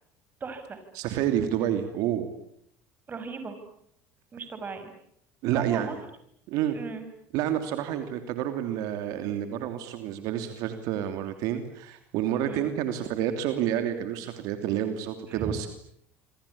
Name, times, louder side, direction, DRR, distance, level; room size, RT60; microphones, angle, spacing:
voice 1, 0.4-0.8 3.1-3.6 4.3-4.9 5.4-6.0 6.7-7.1 7.9-8.0 12.4-12.7 15.3-15.5, right 5 dB, 30° right, 9 dB, 6.3 m, -37 dB
voice 2, 0.9-2.3 5.4-5.9 6.5-6.8 7.3-15.7, right 11 dB, 70° right, 8 dB, 3.0 m, -29 dB
27.0 x 24.5 x 8.7 m, 0.70 s
supercardioid pair, 105°, 6 cm